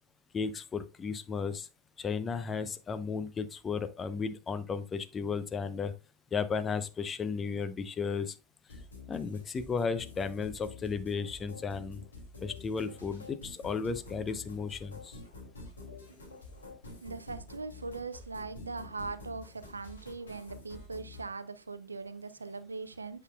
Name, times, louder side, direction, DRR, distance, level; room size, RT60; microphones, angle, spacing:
voice 1, 0.3-1.7 2.0-5.9 6.3-8.4 9.1-12.0 12.4-15.2, left 5 dB, 25° left, 0.7 m, -34 dB
sound 1, 8.7-21.3, left 3 dB, 80° left, 2.4 m, -48 dB
voice 2, 17.0-23.2, right 4 dB, 85° right, 0.5 m, -40 dB
8.2 x 5.8 x 2.3 m
figure-of-eight pair, 80°, 0 cm